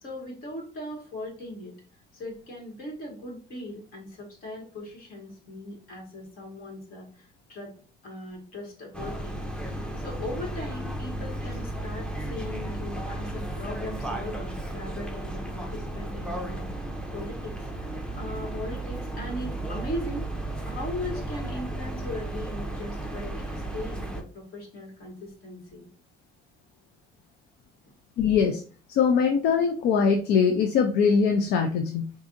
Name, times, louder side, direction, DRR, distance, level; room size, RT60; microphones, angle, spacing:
voice 1, 0.0-1.7 2.1-7.7 8.0-16.9 17.1-17.6 18.1-20.3 20.7-25.9, left 1 dB, 60° left, -1 dB, 1.9 m, -39 dB
sound 1, 8.9-24.2, right 1 dB, 5° left, 0.6 m, -34 dB
voice 2, 28.2-28.6 28.9-32.1, left 6 dB, 80° left, 5 dB, 0.5 m, -22 dB
4.7 x 2.6 x 2.6 m, 0.39 s
cardioid pair, 110°, 17 cm